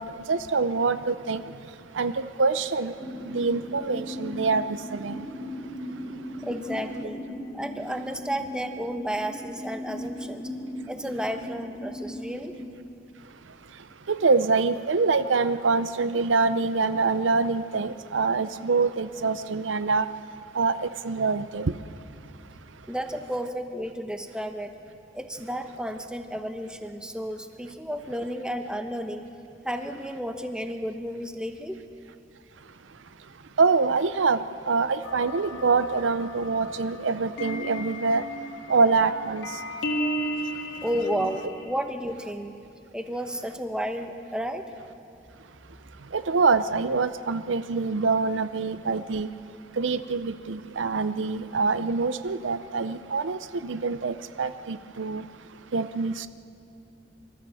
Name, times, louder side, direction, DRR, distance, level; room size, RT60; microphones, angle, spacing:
voice 1, 0.0-1.4 1.9-2.9 3.3-5.3 14.1-20.1 20.5-21.7 33.6-38.2 38.7-39.5 46.1-49.3 49.8-55.2 55.7-56.3, right 4 dB, 85° right, 0.6 m, -25 dB
sound 1, 3.0-12.7, left 1 dB, 15° left, 2.6 m, -38 dB
voice 2, 6.4-7.2 7.5-10.5 10.9-12.6 22.9-24.8 25.1-29.3 29.6-31.8 40.8-42.5 42.9-44.7, equal, 5° right, 1.0 m, -32 dB
sound 2, 35.0-41.7, equal, 65° left, 2.0 m, -34 dB
25.0 x 13.5 x 7.7 m
head